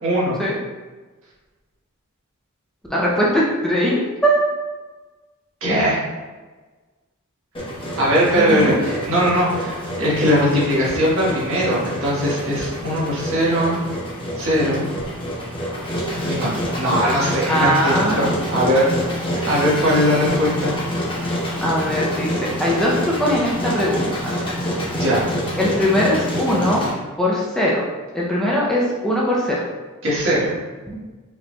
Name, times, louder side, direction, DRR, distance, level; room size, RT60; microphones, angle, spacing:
voice 1, 0.0-0.4 5.6-6.0 8.0-13.8 14.4-14.9 16.3-16.5 16.7-18.9 19.3-20.7 24.9-25.3 30.0-30.5, equal, 65° right, -7 dB, 1.4 m, -20 dB
voice 2, 2.9-4.4 8.3-8.8 17.5-18.2 21.6-24.4 25.6-26.8 27.2-27.8 28.1-29.6 30.9-31.0, equal, 5° left, -5 dB, 0.5 m, -20 dB
Engine, 7.5-26.9, equal, 25° left, 0.9 m, -27 dB
4.9 x 3.0 x 2.2 m, 1.3 s
head